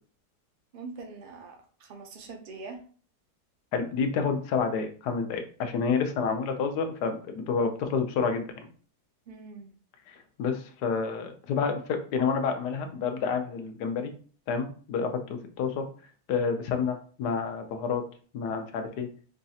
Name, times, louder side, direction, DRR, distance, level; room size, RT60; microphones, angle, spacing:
voice 1, 0.7-2.8 9.3-9.7, right 4 dB, 60° right, 4 dB, 0.5 m, -43 dB
voice 2, 3.7-8.5 10.1-14.1 14.5-15.2 15.6-15.8 16.3-18.0 18.3-19.1, left 5 dB, 85° left, 6 dB, 1.3 m, -29 dB
5.2 x 2.4 x 2.7 m, 0.41 s
omnidirectional pair, 1.7 m